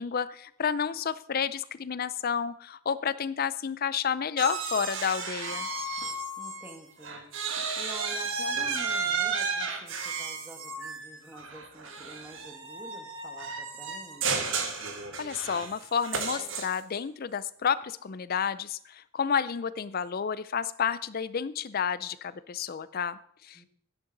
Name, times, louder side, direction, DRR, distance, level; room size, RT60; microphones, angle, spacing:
voice 1, 0.0-5.7 14.8-14.9 15.2-23.6, left 7 dB, 40° left, 16 dB, 0.4 m, -30 dB
sound 1, 4.4-6.7 7.0-17.0, right 4 dB, 55° right, 1.4 m, -33 dB
voice 2, 6.4-7.3 7.8-14.5 23.5-23.7, equal, 10° right, 4 dB, 1.4 m, -47 dB
11.5 x 10.5 x 3.9 m, 0.63 s
head